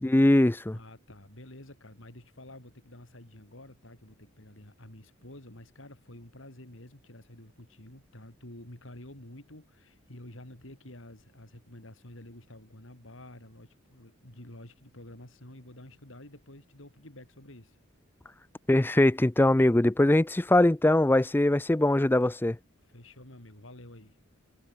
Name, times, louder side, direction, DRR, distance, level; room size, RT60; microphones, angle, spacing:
voice 1, 0.0-0.8 18.7-22.6, left 1 dB, 10° left, 0.4 m, -22 dB
voice 2, 0.7-17.8 22.8-24.2, left 1 dB, 70° left, 4.9 m, -49 dB
head